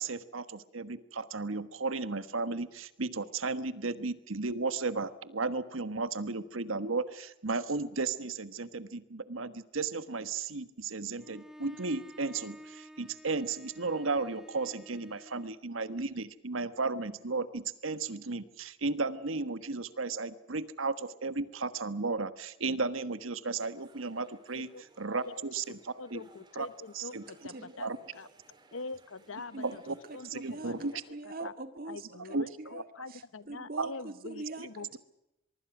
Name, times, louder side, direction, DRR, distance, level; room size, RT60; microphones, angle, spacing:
voice 1, 0.0-26.2 26.5-26.7 26.9-27.2 27.8-28.0 29.9-30.0 30.3-30.9 31.4-31.5 32.3-32.4 33.8-33.9, right 3 dB, 85° right, 13 dB, 1.4 m, -34 dB
Bowed string instrument, 11.2-15.6, equal, 5° right, 1.1 m, -51 dB
sound 1, 23.5-31.1, right 2 dB, 20° right, 3.5 m, -61 dB
voice 2, 26.0-28.3 28.7-30.9 31.4-31.5 31.9-35.0, left 3 dB, 85° left, 16 dB, 1.0 m, -44 dB
voice 3, 27.5-27.9 29.5-29.8 30.1-35.0, right 2 dB, 45° right, 9 dB, 2.0 m, -44 dB
24.0 x 22.5 x 6.1 m, 0.91 s
head